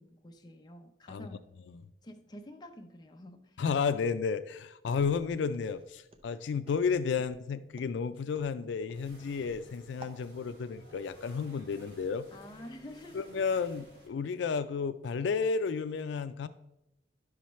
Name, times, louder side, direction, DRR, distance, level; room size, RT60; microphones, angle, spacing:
voice 1, 0.0-1.5 2.0-3.6 12.3-13.3, left 1 dB, 25° left, 0.6 m, -48 dB
voice 2, 3.6-12.3 13.1-16.5, left 5 dB, 85° left, 0.4 m, -32 dB
Walk footsteps, 4.9-10.2, right 1 dB, 30° right, 0.7 m, -54 dB
sound 1, 8.9-14.1, equal, 65° right, 2.3 m, -56 dB
11.5 x 5.7 x 3.1 m
head